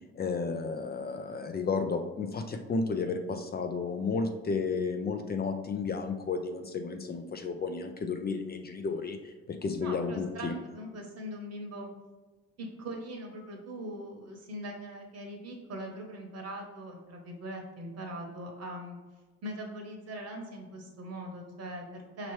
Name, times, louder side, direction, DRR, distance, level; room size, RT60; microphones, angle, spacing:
voice 1, 0.2-10.6, left 4 dB, 35° left, 6 dB, 0.4 m, -32 dB
voice 2, 9.8-11.9 12.6-19.0 19.4-22.3, right 1 dB, 55° right, 2 dB, 1.1 m, -41 dB
5.3 x 3.0 x 3.1 m, 1.3 s
cardioid pair, 90°, 30 cm